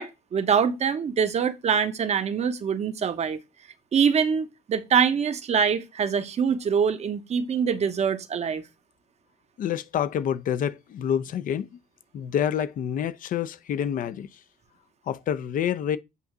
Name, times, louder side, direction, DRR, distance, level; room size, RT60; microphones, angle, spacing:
voice 1, 0.0-3.4 3.9-8.6, right 7 dB, 40° right, 0.9 m, -24 dB
voice 2, 9.6-11.7 12.1-14.3 15.1-16.0, left 9 dB, 55° left, 0.7 m, -27 dB
8.3 x 2.8 x 6.0 m
cardioid pair, 110°, 17 cm